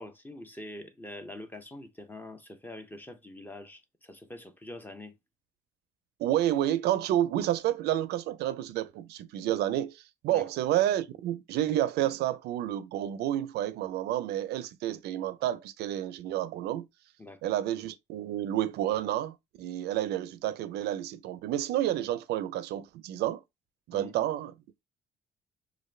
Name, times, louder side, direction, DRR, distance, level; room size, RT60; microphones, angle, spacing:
voice 1, 0.0-5.2 10.3-10.5 17.2-17.5 23.9-24.3, left 1 dB, 10° left, 0.6 m, -45 dB
voice 2, 6.2-16.9 17.4-23.4 23.9-24.5, right 12 dB, 75° right, 0.4 m, -30 dB
2.5 x 2.3 x 3.1 m
cardioid pair, 110°, 17 cm